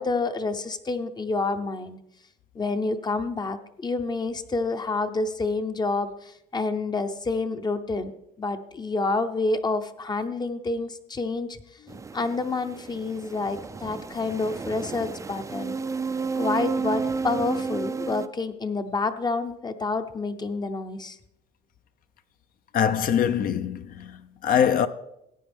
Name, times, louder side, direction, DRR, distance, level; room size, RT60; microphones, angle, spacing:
voice 1, 0.0-2.0 2.5-8.1 8.4-11.6 12.1-15.8 16.3-21.2, left 3 dB, 25° left, 0.7 m, -28 dB
sound 1, 11.9-18.3, right 5 dB, 20° right, 0.4 m, -32 dB
voice 2, 22.7-24.9, left 8 dB, 55° left, 0.7 m, -23 dB
15.0 x 9.0 x 3.5 m
cardioid pair, 110°, 17 cm